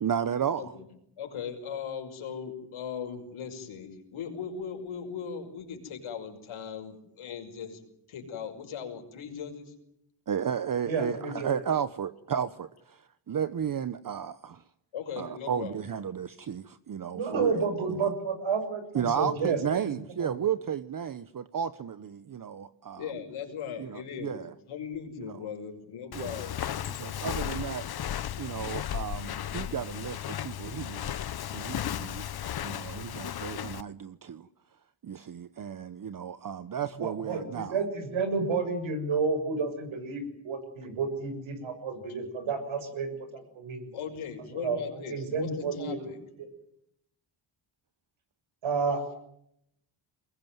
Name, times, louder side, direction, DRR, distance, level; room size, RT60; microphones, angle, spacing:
voice 1, 0.0-0.7 10.3-14.6 15.2-18.1 18.9-23.0 23.8-24.5 25.2-25.3 26.1-26.4 27.0-27.9 28.4-31.1 31.5-32.2 32.6-34.5 35.0-37.8, right 8 dB, 40° right, 13 dB, 1.0 m, -33 dB
voice 2, 1.2-7.8 8.1-9.7 14.9-15.8 23.0-24.4 24.7-26.7 43.1-43.2 43.9-46.2, left 7 dB, 75° left, 4 dB, 6.0 m, -38 dB
voice 3, 10.9-11.5 17.1-19.6 19.9-20.3 37.0-43.9 44.5-46.1 46.4-46.5 48.6-49.2, right 4 dB, 70° right, 8 dB, 7.0 m, -31 dB
Walk footsteps, 26.1-33.8, left 10 dB, 50° left, 0.9 m, -35 dB
23.0 x 21.0 x 9.3 m, 0.77 s
cardioid pair, 90°, 48 cm